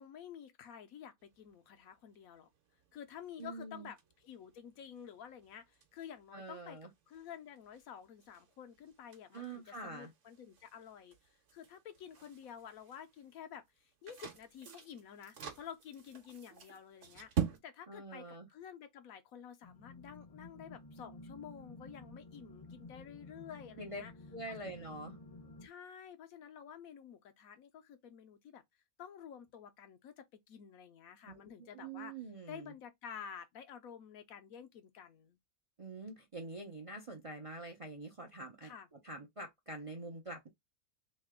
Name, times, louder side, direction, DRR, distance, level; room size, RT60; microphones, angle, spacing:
voice 1, 0.0-2.5 2.9-6.8 7.1-11.2 11.5-24.1 25.6-28.6 29.0-32.1 32.5-35.4 38.6-38.9, left 8 dB, 75° left, 1.1 m, -51 dB
sound 1, 1.2-17.6, right 8 dB, 60° right, 1.2 m, -47 dB
voice 2, 3.4-3.9 6.3-6.9 9.3-10.1 17.9-18.5 23.8-24.0 24.3-25.2 31.3-32.7 35.8-38.7 39.0-40.5, right 2 dB, 40° right, 0.5 m, -45 dB
sound 2, 19.6-25.7, left 2 dB, 35° left, 0.6 m, -53 dB
3.1 x 2.8 x 3.5 m
omnidirectional pair, 1.5 m